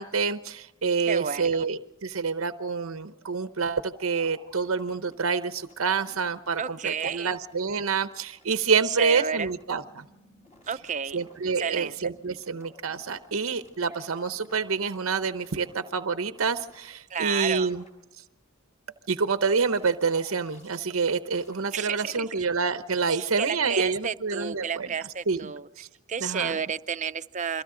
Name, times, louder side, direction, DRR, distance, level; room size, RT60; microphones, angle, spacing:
voice 1, 0.0-10.0 11.1-17.8 19.1-24.9 25.3-25.5 25.8-25.9 26.2-26.6, right 5 dB, 85° right, 11 dB, 0.8 m, -27 dB
voice 2, 1.1-1.7 6.6-7.3 8.9-9.5 10.7-11.2 11.6-12.1 17.1-17.7 21.7-22.3 23.1-25.7 26.1-27.6, right 7 dB, 35° right, 12 dB, 0.6 m, -31 dB
sound 1, 3.9-6.2 6.5-7.6 7.9-8.6 9.0-13.3 13.5-16.8 17.1-17.3 17.6-17.9 19.5-22.4, left 1 dB, 35° left, 5.7 m, -56 dB
29.5 x 23.0 x 3.8 m, 0.95 s
head